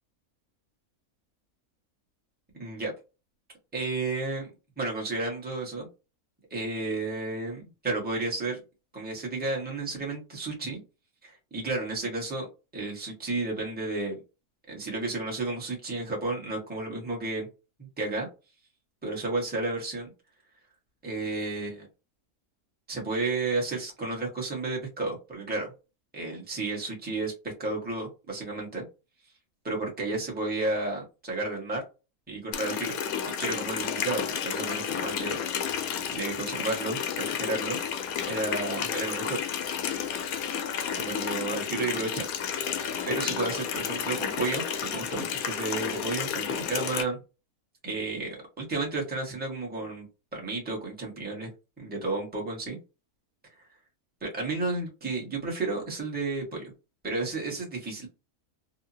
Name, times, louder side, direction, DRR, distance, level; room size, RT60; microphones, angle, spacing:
voice 1, 2.6-2.9 3.7-4.5 4.8-5.9 6.5-8.6 8.9-10.8 11.2-12.5 12.7-14.2 14.7-17.5 17.8-18.3 19.0-20.1 21.0-21.9 22.9-25.7 26.1-28.8 29.6-31.8 32.3-33.0 33.4-37.8 38.3-39.4 41.0-42.7 43.1-47.2 47.8-50.0 50.3-51.5 51.8-52.8 54.2-56.7 57.0-58.1, right 3 dB, 5° right, -2 dB, 0.9 m, -32 dB
Water tap faucet, 32.5-47.0, left 8 dB, 75° left, 1.0 m, -31 dB
2.8 x 2.4 x 2.6 m, 0.29 s
omnidirectional pair, 1.6 m